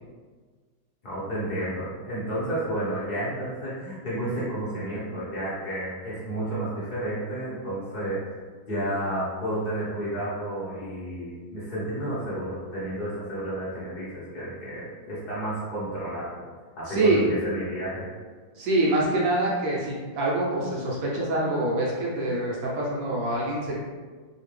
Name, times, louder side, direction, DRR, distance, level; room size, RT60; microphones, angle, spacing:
voice 1, 1.0-8.3 8.7-16.4 16.8-18.0, right 1 dB, 45° left, -10 dB, 0.6 m, -31 dB
voice 2, 16.9-17.2 18.6-23.8, right 2 dB, 70° right, -4 dB, 1.2 m, -25 dB
3.3 x 2.7 x 3.2 m, 1.5 s
omnidirectional pair, 2.2 m